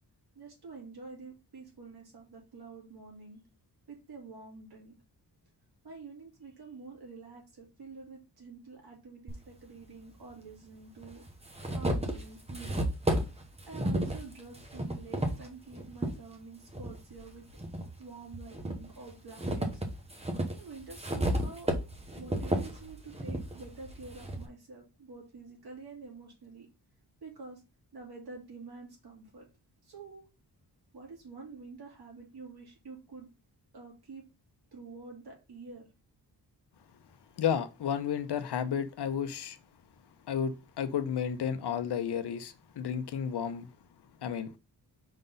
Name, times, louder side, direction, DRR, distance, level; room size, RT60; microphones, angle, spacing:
voice 1, 0.3-3.4 3.9-4.9 5.8-11.2 11.7-12.9 13.7-17.5 18.0-19.8 20.6-21.7 22.2-26.7 27.2-27.6 27.9-29.4 29.8-30.2 30.9-33.3 33.7-34.2 34.7-35.9, right 4 dB, 65° right, 3.2 m, -48 dB
sound 1, 9.3-9.4 10.4-10.5 11.0-16.2 16.7-17.9 18.3-24.5, right 1 dB, 15° right, 0.9 m, -33 dB
voice 2, 37.4-39.6 40.3-43.7 44.2-44.5, left 8 dB, 75° left, 0.8 m, -32 dB
5.3 x 3.9 x 5.4 m
wide cardioid pair, 160°, 41 cm